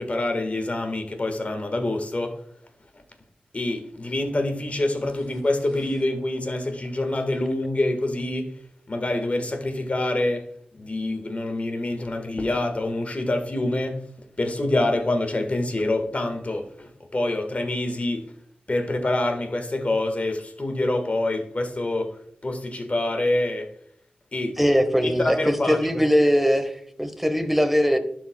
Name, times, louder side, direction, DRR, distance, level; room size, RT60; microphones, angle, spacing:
voice 1, 0.0-2.4 3.5-8.5 8.9-10.5 10.7-14.0 14.4-18.2 18.7-22.2 22.4-23.7 24.3-24.6 25.0-26.0, left 2 dB, 45° left, 1.5 m, -26 dB
voice 2, 24.6-28.0, equal, 5° right, 1.1 m, -21 dB
11.5 x 4.9 x 2.2 m
cardioid pair, 40°, 3 cm